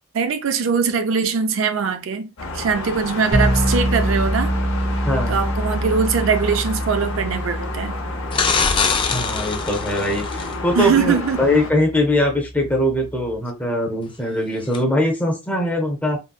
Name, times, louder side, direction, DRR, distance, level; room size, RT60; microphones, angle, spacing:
voice 1, 0.1-4.6 5.3-8.0 10.7-11.5, right 6 dB, 65° right, 0.4 m, -22 dB
sound 1, 2.4-11.7, left 3 dB, 70° left, 0.8 m, -31 dB
sound 2, 3.3-13.4, equal, 80° right, 1.1 m, -26 dB
voice 2, 5.0-5.4 9.1-16.2, left 1 dB, 10° left, 0.7 m, -21 dB
sound 3, 8.3-10.5 14.7-14.8, left 5 dB, 25° left, 0.3 m, -22 dB
3.9 x 2.2 x 2.3 m
head